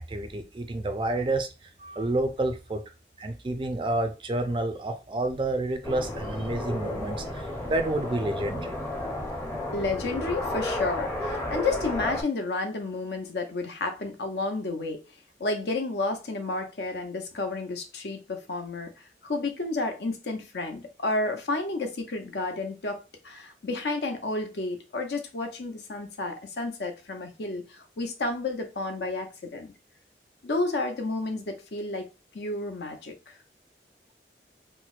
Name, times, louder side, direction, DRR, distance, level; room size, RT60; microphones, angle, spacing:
voice 1, 0.0-1.5 1.8-2.8 3.2-8.7, right 2 dB, 30° right, 0.4 m, -29 dB
sound 1, 5.8-12.2, left 1 dB, 15° left, 0.6 m, -32 dB
voice 2, 9.7-11.1 11.5-15.0 15.4-18.9 19.2-29.7 30.4-32.1 32.3-33.1, left 2 dB, 75° left, 0.7 m, -31 dB
4.3 x 2.1 x 2.4 m
head